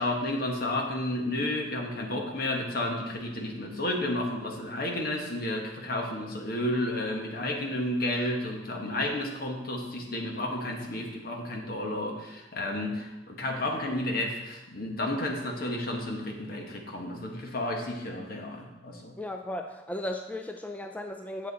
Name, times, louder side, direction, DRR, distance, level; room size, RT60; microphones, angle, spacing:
voice 1, 0.0-19.1, left 1 dB, 55° left, 1 dB, 1.4 m, -32 dB
voice 2, 19.2-21.5, left 1 dB, 10° left, 4 dB, 0.4 m, -36 dB
7.8 x 7.4 x 4.1 m, 1.0 s
head